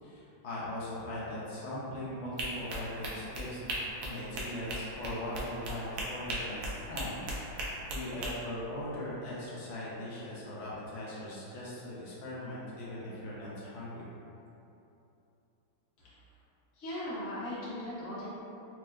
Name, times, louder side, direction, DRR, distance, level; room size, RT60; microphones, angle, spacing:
voice 1, 0.0-3.7 4.0-7.2 7.5-14.0, left 1 dB, 80° left, -8 dB, 0.6 m, -40 dB
sound 1, 2.4-8.3, right 1 dB, 80° right, 0.7 m, -38 dB
voice 2, 16.8-18.3, left 1 dB, 45° left, -10 dB, 1.1 m, -38 dB
4.2 x 3.1 x 2.3 m, 2.8 s
omnidirectional pair, 2.2 m